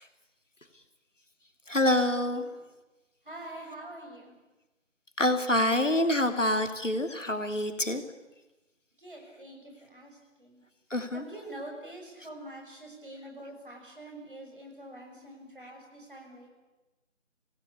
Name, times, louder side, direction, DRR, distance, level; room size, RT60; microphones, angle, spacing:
voice 1, 1.7-2.4 5.2-8.0 10.9-11.2, left 1 dB, 70° left, 6 dB, 2.9 m, -26 dB
voice 2, 3.2-4.3 9.0-10.6 11.1-16.5, right 1 dB, 40° right, 1 dB, 6.6 m, -45 dB
26.5 x 17.5 x 8.6 m, 1.1 s
figure-of-eight pair, 175°, 38 cm